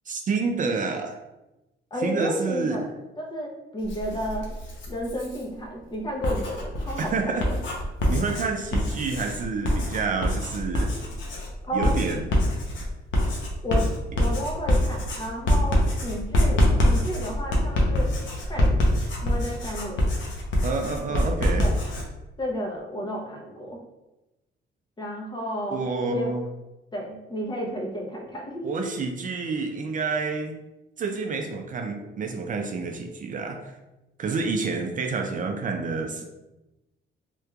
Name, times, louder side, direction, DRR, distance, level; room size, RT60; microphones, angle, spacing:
voice 1, 0.1-1.2 2.0-2.9 7.0-7.5 8.1-10.9 11.7-12.3 20.6-21.7 25.7-26.4 28.6-30.6 31.0-33.7 34.2-36.2, right 4 dB, 40° right, 3 dB, 0.4 m, -28 dB
voice 2, 1.9-4.5 4.9-7.5 11.6-11.9 13.6-13.8 14.2-18.1 18.5-18.8 19.2-20.1 21.1-21.2 21.6-21.8 22.4-23.8 25.0-25.8 26.1-26.3 26.9-28.6, equal, 20° left, 0 dB, 0.8 m, -32 dB
Writing, 3.8-5.4 6.1-22.1, left 1 dB, 75° left, 0.8 m, -25 dB
3.4 x 3.0 x 2.3 m, 1.0 s
cardioid pair, 90°, 20 cm